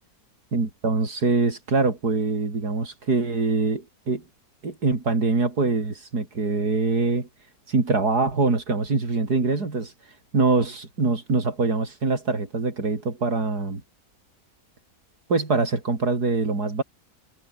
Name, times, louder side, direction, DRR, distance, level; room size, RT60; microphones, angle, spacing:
voice 1, 0.5-4.2 4.6-7.3 7.7-9.9 10.3-13.8 15.3-16.8, right 3 dB, 90° right, 4.4 m, -24 dB
omnidirectional pair, 1.6 m